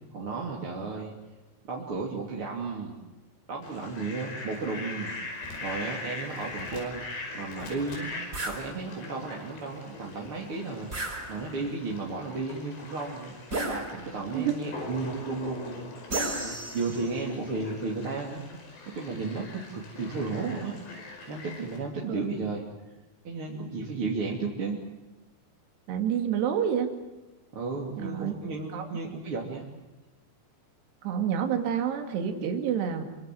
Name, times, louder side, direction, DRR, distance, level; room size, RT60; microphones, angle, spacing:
voice 1, 0.1-1.1 1.6-2.9 3.5-5.1 5.6-7.1 7.3-8.1 8.4-13.4 13.7-18.4 18.9-20.8 21.3-22.6 23.2-24.8 27.5-29.6, right 3 dB, 35° right, -2 dB, 3.3 m, -34 dB
Fowl, 3.6-21.8, left 3 dB, 75° left, 7.3 m, -42 dB
sound 1, 8.3-8.6 10.9-11.7 13.5-14.3 16.1-17.2, right 2 dB, 20° right, 4.8 m, -33 dB
voice 2, 25.9-26.9 28.0-28.3 28.7-28.9 31.0-33.0, right 8 dB, 75° right, 6 dB, 4.4 m, -28 dB
27.5 x 24.5 x 7.7 m, 1.1 s
omnidirectional pair, 5.0 m